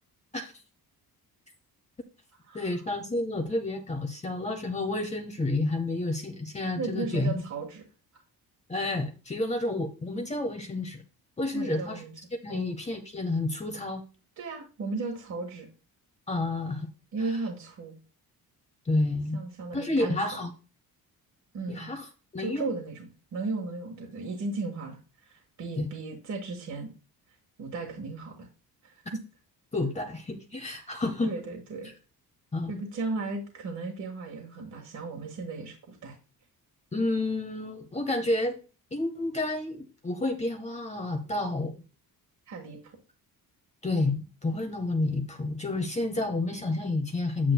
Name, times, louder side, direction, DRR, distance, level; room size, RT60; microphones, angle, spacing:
voice 1, 2.5-7.4 8.7-11.0 11.4-12.0 12.4-14.0 16.3-16.9 17.3-17.4 18.9-19.4 19.7-20.5 21.7-22.1 22.3-22.7 25.8-25.9 29.7-31.3 32.5-32.9 36.9-38.6 38.9-41.7 43.8-47.5, left 2 dB, 20° left, 5 dB, 0.9 m, -30 dB
voice 2, 6.8-7.8 11.5-12.1 12.5-12.7 14.4-15.7 17.1-18.0 19.3-20.4 21.5-21.9 22.4-26.9 27.6-28.5 28.8-29.2 31.2-31.9 32.7-36.2 42.5-42.8, right 3 dB, 50° right, 1 dB, 1.6 m, -35 dB
9.6 x 8.7 x 2.3 m, 0.34 s
cardioid pair, 170°, 38 cm